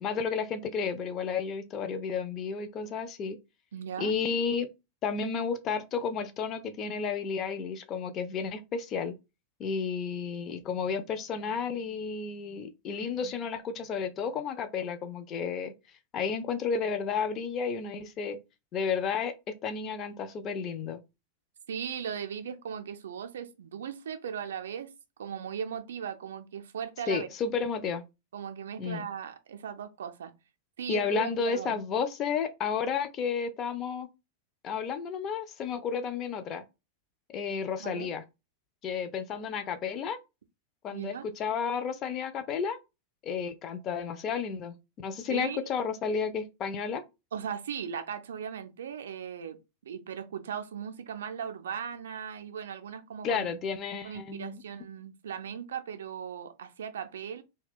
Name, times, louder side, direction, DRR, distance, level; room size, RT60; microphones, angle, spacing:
voice 1, 0.0-3.4 4.0-4.7 5.0-9.1 9.6-15.7 16.1-18.4 18.7-19.3 19.6-21.0 27.1-28.0 28.8-29.1 30.9-34.1 34.6-36.6 37.3-38.2 38.8-40.2 40.8-42.8 43.2-47.0 53.2-54.6, left 6 dB, 30° left, 0.4 m, -32 dB
voice 2, 3.7-4.2 21.7-24.9 25.2-27.3 28.3-30.3 30.8-31.8 37.8-38.1 40.9-41.3 45.3-45.7 47.3-53.6 54.0-57.4, right 8 dB, 65° right, 0.4 m, -38 dB
2.2 x 2.2 x 3.4 m
figure-of-eight pair, 90°, 0 cm